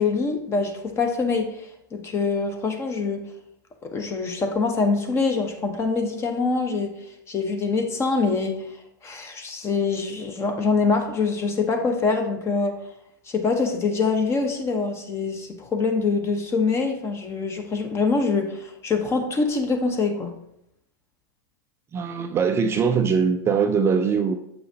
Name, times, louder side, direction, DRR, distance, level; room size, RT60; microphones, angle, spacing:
voice 1, 0.0-3.3 3.8-6.9 7.3-8.6 9.0-12.8 13.3-20.3, left 4 dB, 25° left, 5 dB, 1.1 m, -24 dB
voice 2, 21.9-24.4, right 6 dB, 25° right, 6 dB, 0.4 m, -21 dB
7.6 x 5.5 x 2.8 m, 0.79 s
hypercardioid pair, 105°, 11 cm